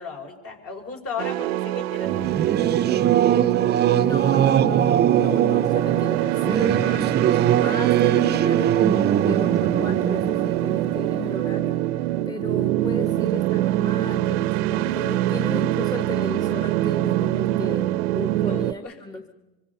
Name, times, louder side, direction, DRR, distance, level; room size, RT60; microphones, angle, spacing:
voice 1, 0.0-2.3 17.5-17.6 18.3-18.9, left 5 dB, 45° left, 2 dB, 5.9 m, -36 dB
sound 1, 1.2-18.7, right 14 dB, 80° right, 0.8 m, -24 dB
Singing / Musical instrument, 2.1-12.2, right 10 dB, 35° right, 0.7 m, -22 dB
voice 2, 3.8-19.3, left 2 dB, 10° left, 7 dB, 1.3 m, -35 dB
25.0 x 24.0 x 5.6 m, 1.1 s
supercardioid pair, 95°, 31 cm